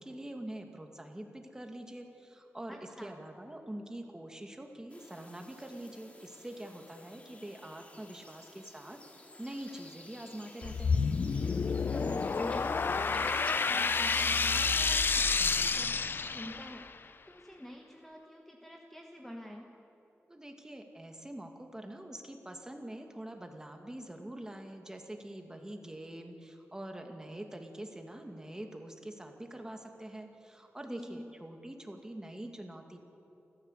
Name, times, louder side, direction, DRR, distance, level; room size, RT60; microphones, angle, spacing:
voice 1, 0.0-9.0 9.4-11.0 20.3-33.0, right 1 dB, 15° right, 4 dB, 2.2 m, -45 dB
voice 2, 2.7-3.1 11.9-12.6 13.0-19.7 30.9-31.2, equal, 5° left, 1 dB, 1.4 m, -47 dB
sound 1, 4.9-15.1, left 2 dB, 30° left, 2.2 m, -51 dB
sound 2, 10.6-16.9, left 4 dB, 50° left, 0.6 m, -29 dB
29.5 x 14.5 x 8.1 m, 2.9 s
wide cardioid pair, 130°, 5 cm